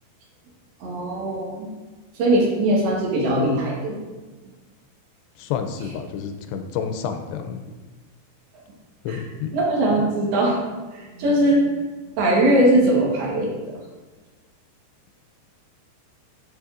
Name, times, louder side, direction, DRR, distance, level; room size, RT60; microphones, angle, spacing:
voice 1, 0.8-1.7 2.2-4.0 9.1-9.2 9.5-10.6 10.9-11.7 12.2-13.7, right 1 dB, 70° right, -3 dB, 3.1 m, -20 dB
voice 2, 5.4-7.6 9.0-9.5 10.0-10.1, left 7 dB, 85° left, 7 dB, 2.7 m, -29 dB
12.0 x 5.1 x 2.5 m, 1.3 s
omnidirectional pair, 4.8 m